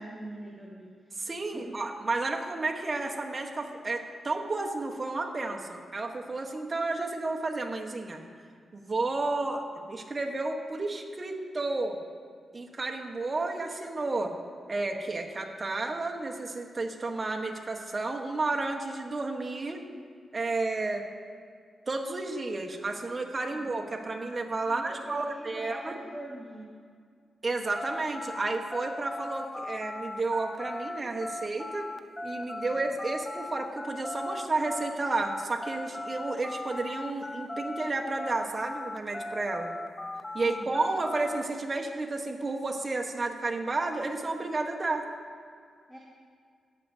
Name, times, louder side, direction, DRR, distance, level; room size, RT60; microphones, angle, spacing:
voice 1, 0.0-1.8 23.5-23.7 24.1-24.3 24.6-26.6 32.7-32.9 40.4-40.7 45.9-46.0, right 1 dB, ahead, -5 dB, 1.6 m, -44 dB
voice 2, 1.2-8.2 8.7-12.0 12.5-14.3 14.7-19.8 20.3-21.0 21.9-26.0 27.4-31.9 32.2-39.7 40.3-45.1, right 3 dB, 35° right, 2 dB, 1.1 m, -32 dB
sound 1, 27.8-37.9 38.2-41.4, left 2 dB, 20° left, 0.4 m, -38 dB
14.0 x 9.5 x 2.7 m, 2.1 s
cardioid pair, 90°, 0 cm